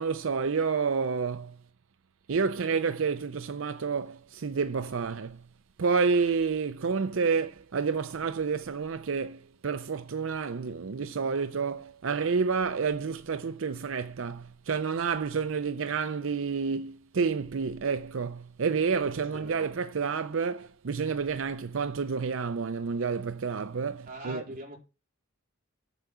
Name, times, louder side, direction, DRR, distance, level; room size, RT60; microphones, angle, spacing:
voice 1, 0.0-1.6 2.3-5.4 5.8-24.4, right 5 dB, 75° right, 0.6 m, -29 dB
voice 2, 19.2-19.6 24.1-24.8, right 1 dB, 45° right, 4.1 m, -42 dB
8.1 x 7.2 x 6.8 m
head